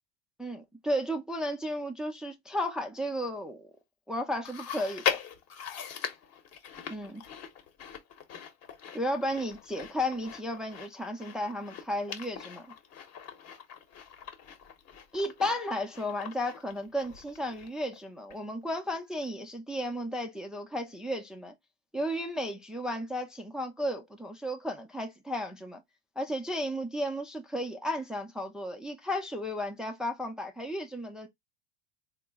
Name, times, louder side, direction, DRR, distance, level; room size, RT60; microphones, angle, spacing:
voice 1, 0.4-3.7 4.1-5.2 6.9-7.2 8.9-12.7 15.1-21.5 21.9-25.8 26.2-31.3, equal, ahead, 0.3 m, -34 dB
Chewing mastication, 4.5-18.0 18.3-18.4 19.2-19.3, left 8 dB, 45° left, 0.9 m, -40 dB
3.7 x 2.0 x 3.3 m
supercardioid pair, 115°, 35 cm